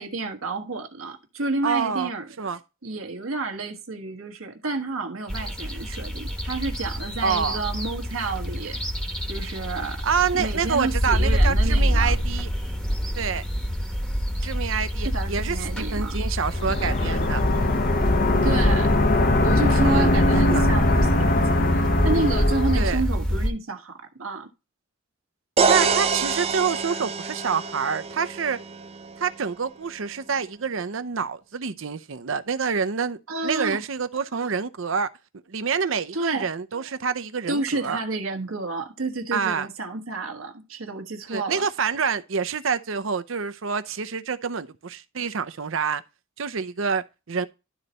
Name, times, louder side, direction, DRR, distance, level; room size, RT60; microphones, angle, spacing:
voice 1, 0.0-2.3 2.8-8.8 9.3-10.0 10.3-12.2 15.0-16.2 18.4-18.9 19.4-24.5 33.3-33.8 36.1-36.5 37.5-41.7, right 3 dB, 90° right, 1.4 m, -30 dB
voice 2, 1.6-2.1 2.4-2.6 7.2-7.6 10.0-12.5 13.2-13.4 14.4-17.4 19.8-20.1 20.4-20.6 22.8-23.0 25.7-28.6 29.2-35.1 35.5-38.0 39.3-39.7 41.3-46.0 46.4-47.5, right 6 dB, 70° right, 0.7 m, -27 dB
sound 1, 5.3-23.5, equal, 5° left, 1.1 m, -26 dB
sound 2, 16.5-23.0, left 2 dB, 45° left, 0.9 m, -22 dB
sound 3, 25.6-29.4, right 5 dB, 30° right, 0.6 m, -25 dB
12.0 x 4.1 x 4.2 m
head